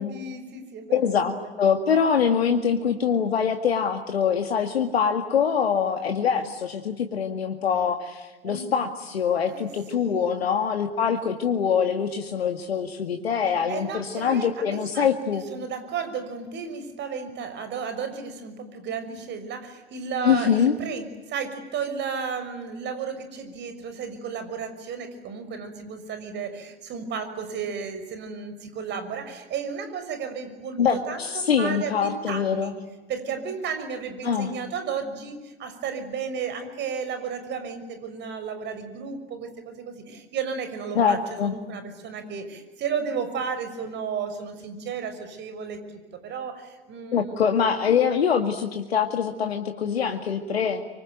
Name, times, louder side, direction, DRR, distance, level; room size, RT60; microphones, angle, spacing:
voice 1, 0.0-1.5 8.4-8.8 9.5-9.7 10.0-10.3 13.4-32.7 33.1-47.3, right 6 dB, 35° right, 9 dB, 6.1 m, -33 dB
voice 2, 0.9-15.4 20.2-20.8 30.8-32.7 34.2-34.5 41.0-41.5 47.1-50.8, left 7 dB, 75° left, 6 dB, 2.1 m, -24 dB
26.0 x 24.5 x 9.3 m, 1.1 s
hypercardioid pair, 95°, 31 cm